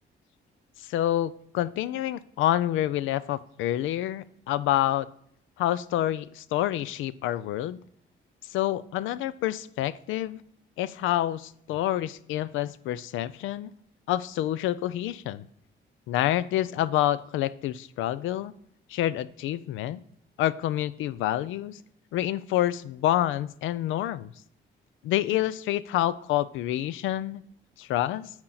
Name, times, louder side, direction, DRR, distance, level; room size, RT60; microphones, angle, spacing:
voice 1, 0.8-5.1 5.6-7.8 8.5-10.4 10.8-13.7 14.1-15.5 16.1-18.5 18.9-20.0 20.4-21.8 22.1-24.3 25.0-27.4 27.8-28.3, left 13 dB, 85° left, 17 dB, 0.4 m, -28 dB
8.6 x 4.5 x 3.8 m, 0.69 s
cardioid pair, 90°, 20 cm